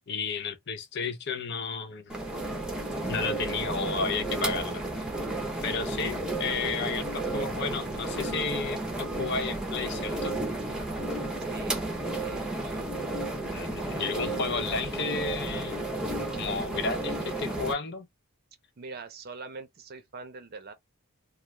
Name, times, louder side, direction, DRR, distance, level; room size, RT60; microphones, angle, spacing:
voice 1, 0.1-2.2 3.1-4.8 5.6-10.4 13.5-15.8 16.3-18.1, left 4 dB, 50° left, 0.6 m, -32 dB
sound 1, 2.1-17.7, right 2 dB, 5° right, 0.6 m, -32 dB
voice 2, 6.4-6.8 11.4-12.8 18.8-20.7, right 4 dB, 45° right, 0.5 m, -44 dB
2.4 x 2.3 x 3.1 m
head